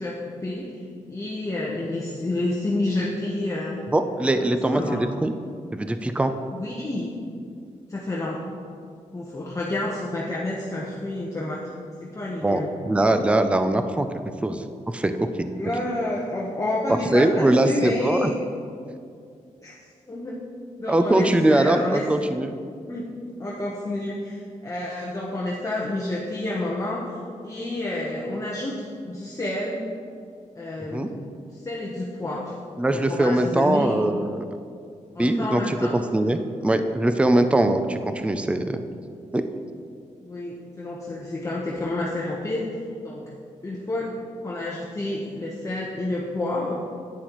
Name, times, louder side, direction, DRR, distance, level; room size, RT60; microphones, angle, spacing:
voice 1, 0.0-3.8 4.4-5.0 6.5-7.1 7.9-8.4 9.1-11.7 12.0-12.7 15.5-18.3 19.6-19.7 20.1-20.4 20.8-22.0 22.9-23.0 23.4-27.2 27.4-29.9 30.6-31.2 31.5-32.5 32.9-34.0 35.1-36.0 36.2-36.3 40.2-42.8 43.0-43.3 43.6-44.1 44.4-46.8, left 2 dB, 25° left, -5 dB, 1.0 m, -29 dB
voice 2, 3.9-5.3 5.7-6.3 12.4-12.6 12.9-14.1 14.4-15.5 17.1-18.3 20.9-22.5 30.8-31.1 32.8-34.4 35.2-38.8 39.3-39.4, right 1 dB, 10° right, 8 dB, 0.4 m, -22 dB
10.5 x 9.5 x 3.1 m, 2.3 s
wide cardioid pair, 115°, 13 cm